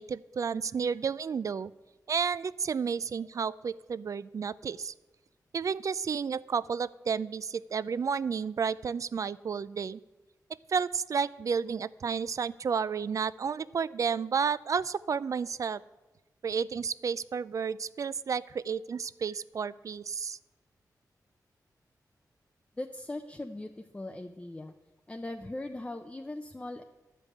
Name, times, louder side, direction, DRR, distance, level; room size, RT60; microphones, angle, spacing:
voice 1, 0.0-1.7 2.1-4.9 5.5-10.0 10.7-15.8 16.4-20.4, right 6 dB, 55° right, 18 dB, 0.3 m, -31 dB
voice 2, 22.8-24.7 25.1-26.8, left 2 dB, 15° left, 6 dB, 0.5 m, -39 dB
11.5 x 5.3 x 8.4 m, 1.1 s
wide cardioid pair, 105°, 7 cm